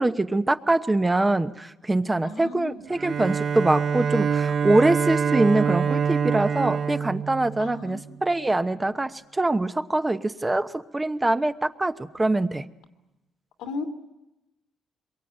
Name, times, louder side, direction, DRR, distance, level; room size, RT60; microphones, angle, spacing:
voice 1, 0.0-12.6, right 2 dB, 15° right, 10 dB, 1.0 m, -24 dB
voice 2, 2.2-2.8 7.6-8.0 13.6-13.8, left 3 dB, 90° left, 5 dB, 2.8 m, -35 dB
Bowed string instrument, 2.9-8.1, right 6 dB, 50° right, 0.8 m, -25 dB
26.0 x 23.0 x 8.9 m, 0.94 s
cardioid pair, 90°, 0 cm